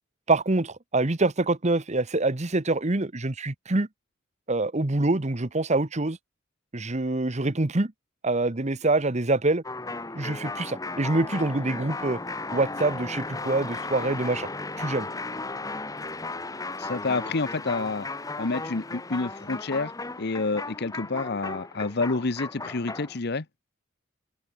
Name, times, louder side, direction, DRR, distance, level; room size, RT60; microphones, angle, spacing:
voice 1, 0.3-3.9 4.5-6.2 6.7-7.9 8.2-9.6 10.1-12.2 12.5-14.5 14.8-15.1, right 2 dB, 35° right, 1.1 m, -25 dB
sound 1, 9.6-23.2, left 3 dB, 15° left, 1.2 m, -35 dB
voice 2, 16.8-18.1 18.4-19.9 20.2-23.4, left 3 dB, 55° left, 1.0 m, -28 dB
head